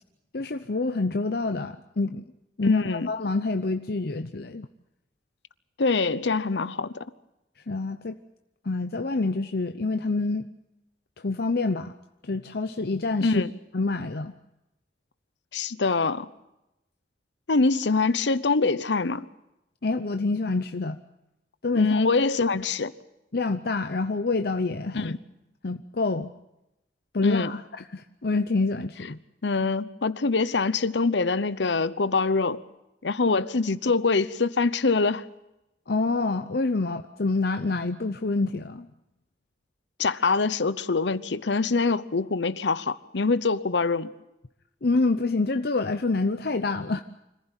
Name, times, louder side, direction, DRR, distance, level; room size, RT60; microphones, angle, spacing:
voice 1, 0.3-2.3 2.6-4.7 7.7-8.2 8.6-10.4 11.2-11.9 12.2-13.4 13.7-14.4 19.8-21.0 21.6-22.0 23.3-25.2 25.6-26.3 27.1-27.6 27.9-29.2 33.3-33.4 35.9-38.9 44.8-47.0, left 3 dB, 60° left, 0.8 m, -27 dB
voice 2, 2.6-3.1 5.8-7.0 13.2-13.5 15.5-16.3 17.5-19.3 21.7-22.9 24.9-25.2 27.2-27.5 29.4-32.6 33.0-35.2 40.0-44.1, left 4 dB, 90° left, 0.9 m, -24 dB
26.0 x 15.0 x 8.9 m
head